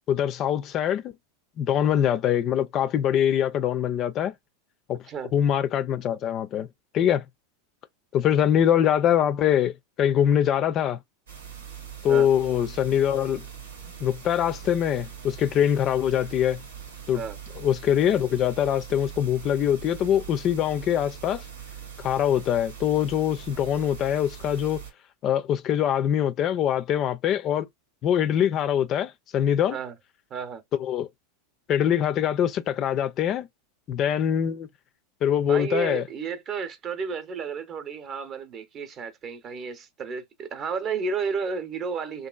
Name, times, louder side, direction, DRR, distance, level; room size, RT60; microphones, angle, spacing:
voice 1, 0.1-1.1 1.6-4.3 4.9-5.0 5.3-6.7 6.9-7.2 8.1-11.0 12.0-13.4 14.0-16.6 17.1-17.2 17.6-21.4 22.0-24.8 25.2-27.7 28.0-29.8 30.8-31.1 31.7-33.5 33.9-34.7 35.2-36.0, left 10 dB, 40° left, 0.3 m, -23 dB
sound 1, 11.3-24.9, right 8 dB, 85° right, 0.9 m, -41 dB
voice 2, 30.3-30.6 35.4-42.3, right 5 dB, 40° right, 0.7 m, -32 dB
2.8 x 2.4 x 2.3 m
hypercardioid pair, 90°, 0 cm